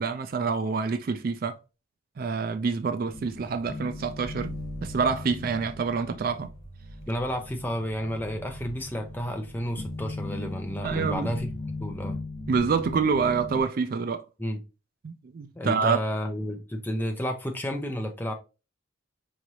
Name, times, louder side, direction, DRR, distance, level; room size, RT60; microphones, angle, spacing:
voice 1, 0.0-1.6 2.2-4.5 4.8-6.5 10.8-11.3 12.5-14.2 15.0-16.0, right 5 dB, 45° right, 0.3 m, -27 dB
sound 1, 3.1-13.6, left 2 dB, 60° left, 1.3 m, -38 dB
voice 2, 7.1-11.5 11.8-12.2 14.4-14.6 15.6-18.3, equal, 10° left, 0.6 m, -31 dB
4.9 x 3.1 x 2.7 m
head